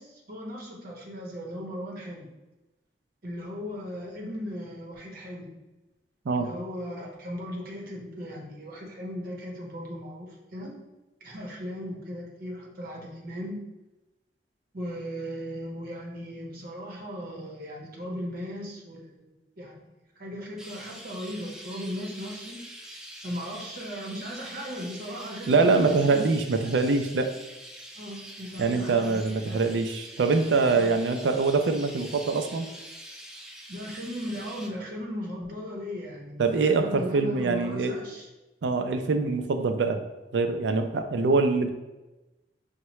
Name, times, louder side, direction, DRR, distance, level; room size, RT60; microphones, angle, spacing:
voice 1, 0.0-2.3 3.2-5.6 6.4-10.7 11.2-13.6 14.7-19.2 19.6-19.8 20.2-22.6 23.2-26.3 28.0-29.2 29.5-29.6 30.7-31.0 33.7-38.3, equal, 55° right, -2 dB, 0.9 m, -37 dB
Chirp tweet, 20.6-34.7, equal, 5° right, 0.4 m, -45 dB
voice 2, 25.5-27.3 28.6-32.7 36.4-38.0 38.6-40.0 40.3-41.7, right 4 dB, 85° right, 6 dB, 0.4 m, -24 dB
5.5 x 2.2 x 3.0 m, 1.1 s
head